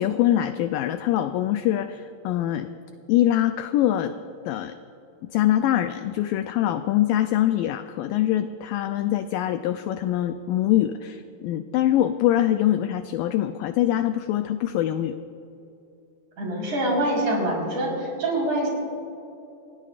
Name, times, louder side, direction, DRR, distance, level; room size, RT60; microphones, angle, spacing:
voice 1, 0.0-2.7 3.1-4.1 4.5-4.7 5.3-15.2, left 12 dB, 90° left, 8 dB, 1.9 m, -23 dB
voice 2, 16.4-18.7, right 1 dB, 50° right, -3 dB, 5.5 m, -25 dB
30.0 x 17.0 x 2.5 m, 2.8 s
omnidirectional pair, 4.5 m